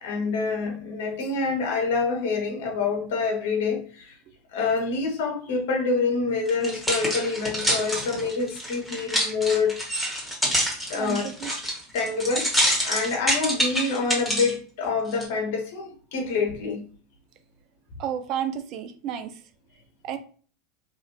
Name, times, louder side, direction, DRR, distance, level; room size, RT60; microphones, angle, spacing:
voice 1, 0.0-4.2 4.5-9.8 10.9-11.3 11.9-16.8, left 4 dB, 65° left, 0.8 m, -26 dB
sound 1, 6.5-14.5 15.1-15.2, equal, ahead, 1.3 m, -26 dB
voice 2, 10.9-11.5 18.0-19.3 20.0-20.2, right 9 dB, 50° right, 0.4 m, -31 dB
2.7 x 2.6 x 2.8 m
hypercardioid pair, 85°, 0 cm